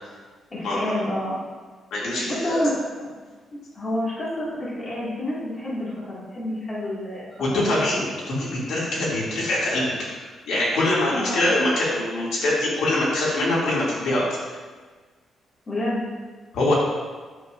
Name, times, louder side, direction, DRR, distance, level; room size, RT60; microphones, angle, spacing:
voice 1, 0.5-1.4 2.2-2.7 3.7-7.6 11.1-11.5 15.7-16.0, left 1 dB, 30° left, -8 dB, 2.0 m, -28 dB
voice 2, 1.9-2.6 7.4-14.2 16.5-16.7, left 1 dB, 75° left, -6 dB, 2.4 m, -24 dB
9.3 x 7.2 x 2.5 m, 1.4 s
cardioid pair, 160°, 0 cm